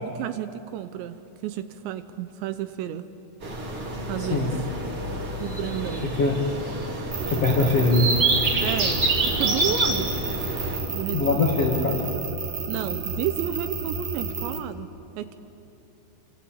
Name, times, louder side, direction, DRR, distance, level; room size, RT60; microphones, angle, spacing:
voice 1, 0.0-3.1 4.1-4.5 5.4-6.1 8.6-10.1 10.9-11.5 12.7-14.9 15.2-15.3, right 11 dB, 80° right, 11 dB, 2.8 m, -32 dB
sound 1, 3.4-10.8, right 2 dB, 30° right, 3.5 m, -27 dB
voice 2, 4.2-4.5 6.2-6.4 7.3-8.1 11.1-12.0, left 3 dB, 55° left, 0 dB, 1.8 m, -22 dB
sound 2, 7.1-14.6, right 4 dB, 50° right, 3.2 m, -31 dB
26.5 x 25.5 x 8.7 m, 2.8 s
omnidirectional pair, 5.6 m